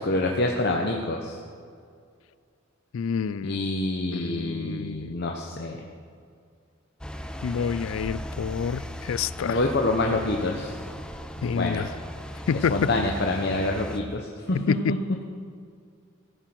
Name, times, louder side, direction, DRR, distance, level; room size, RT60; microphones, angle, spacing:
voice 1, 0.0-1.3 3.4-5.8 9.4-10.7 11.5-11.8 12.7-15.0, left 2 dB, 50° left, 1 dB, 0.9 m, -26 dB
voice 2, 2.9-3.7 4.1-5.1 7.4-9.6 11.4-11.9 12.5-12.9 14.5-15.0, left 6 dB, 70° left, 19 dB, 0.4 m, -28 dB
sound 1, 7.0-14.0, equal, 5° left, 0.6 m, -37 dB
14.5 x 9.0 x 6.1 m, 2.2 s
head